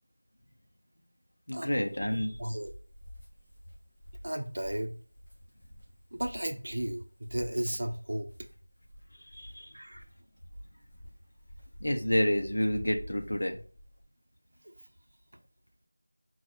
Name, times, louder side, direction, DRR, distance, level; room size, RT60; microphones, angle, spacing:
voice 1, 1.5-2.4 9.2-9.7 11.8-13.6, equal, 65° left, 0.8 m, -29 dB
sound 1, 1.8-14.0, equal, 35° left, 1.7 m, -50 dB
voice 2, 2.4-2.7 4.2-5.0 6.1-8.3 9.7-10.0 14.6-14.7, right 1 dB, 70° right, 0.7 m, -34 dB
4.1 x 2.4 x 4.3 m
figure-of-eight pair, 175°, 0 cm